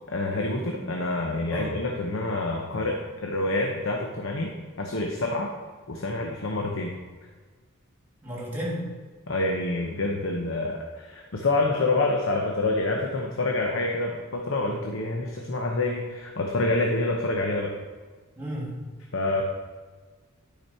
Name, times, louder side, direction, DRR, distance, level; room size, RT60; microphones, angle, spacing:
voice 1, 0.1-4.5 4.8-5.5 5.9-6.9 9.3-17.7 19.1-19.4, left 2 dB, 65° left, 1 dB, 0.8 m, -27 dB
voice 2, 8.2-8.8 18.4-18.7, equal, 10° right, -5 dB, 2.5 m, -32 dB
10.0 x 5.1 x 4.4 m, 1.4 s
head